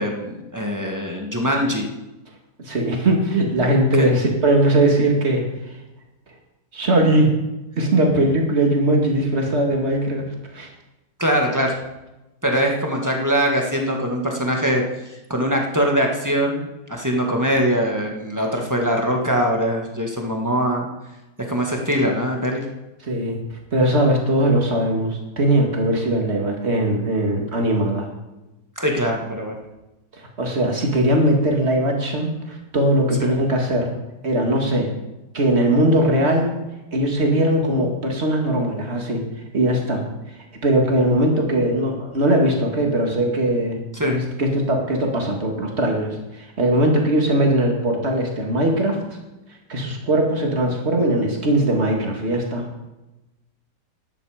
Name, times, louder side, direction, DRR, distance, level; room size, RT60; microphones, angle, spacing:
voice 1, 0.0-1.9 4.0-4.1 11.2-11.8 12.4-20.9 21.5-22.7 28.8-29.5 33.2-33.4 43.9-44.2, equal, 10° right, 1 dB, 1.6 m, -22 dB
voice 2, 2.7-5.4 6.7-7.4 7.8-10.3 10.5-10.7 23.0-28.1 30.4-33.9 34.2-34.9 35.3-36.5 36.9-39.3 39.5-40.0 40.6-43.8 44.0-49.0 49.7-52.6, right 1 dB, 35° right, 1 dB, 2.4 m, -20 dB
12.5 x 10.5 x 5.0 m, 1.0 s
omnidirectional pair, 1.9 m